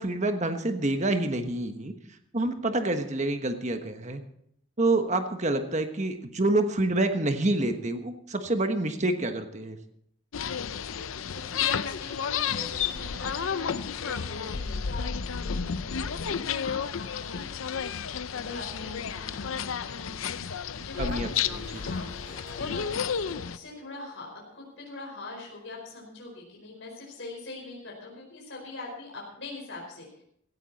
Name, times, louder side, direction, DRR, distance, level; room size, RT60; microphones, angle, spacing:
voice 1, 0.0-1.9 2.3-4.2 4.8-9.8 21.0-21.3 21.5-21.8, right 2 dB, 35° right, 7 dB, 1.3 m, -27 dB
sound 1, 10.3-23.6, left 7 dB, 85° left, 0.6 m, -31 dB
voice 2, 11.3-17.5 18.3-21.1 21.7-22.9 23.2-30.2, left 2 dB, 65° left, -2 dB, 4.9 m, -43 dB
Harp, 21.1-26.0, equal, 80° right, 3.1 m, -53 dB
17.0 x 14.0 x 4.2 m, 0.71 s
head